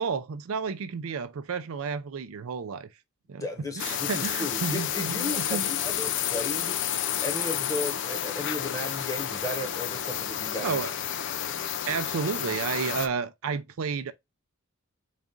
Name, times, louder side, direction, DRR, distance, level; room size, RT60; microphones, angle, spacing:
voice 1, 0.0-2.9 3.3-3.5 3.8-5.7 10.6-10.9 11.9-14.1, right 5 dB, 75° right, 0.4 m, -31 dB
voice 2, 3.4-6.8 7.2-10.8, left 1 dB, 15° left, 1.0 m, -35 dB
sound 1, 3.8-13.1, left 10 dB, 55° left, 0.4 m, -30 dB
4.0 x 2.4 x 3.6 m
head